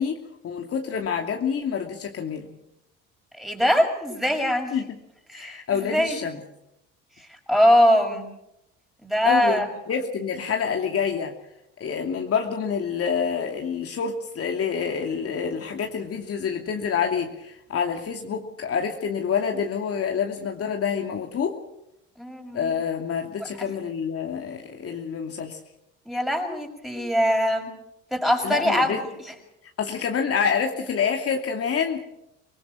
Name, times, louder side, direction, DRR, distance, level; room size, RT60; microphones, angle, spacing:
voice 1, 0.0-2.6 4.7-4.9 5.3-6.4 9.2-11.3 11.8-21.6 22.5-25.6 28.4-29.0 29.8-32.0, left 6 dB, 45° left, 2 dB, 2.8 m, -27 dB
voice 2, 3.4-4.7 5.3-6.2 7.3-8.3 9.0-9.7 22.2-22.7 26.1-27.7 28.1-29.1, equal, ahead, 3 dB, 6.3 m, -22 dB
25.0 x 19.5 x 6.4 m, 0.82 s
supercardioid pair, 80°, 31 cm